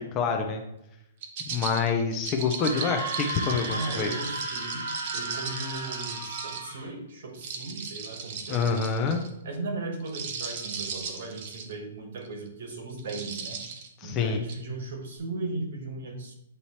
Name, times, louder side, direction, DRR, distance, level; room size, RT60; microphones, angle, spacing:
voice 1, 0.1-0.6 1.5-4.1 8.5-9.2 14.0-14.4, left 5 dB, 15° left, 4 dB, 0.4 m, -27 dB
sound 1, 1.2-6.7 7.3-9.3 10.0-11.7 12.2-12.5 13.0-13.9 14.5-14.6, right 6 dB, 35° right, 0.7 m, -37 dB
Screaming, 2.5-6.9, right 2 dB, 90° right, 2.3 m, -35 dB
voice 2, 3.7-4.9 5.1-8.7 9.4-13.6 14.0-16.3, right 2 dB, 55° right, 4 dB, 1.4 m, -37 dB
8.0 x 2.9 x 4.1 m, 0.83 s
hypercardioid pair, 180°, 0 cm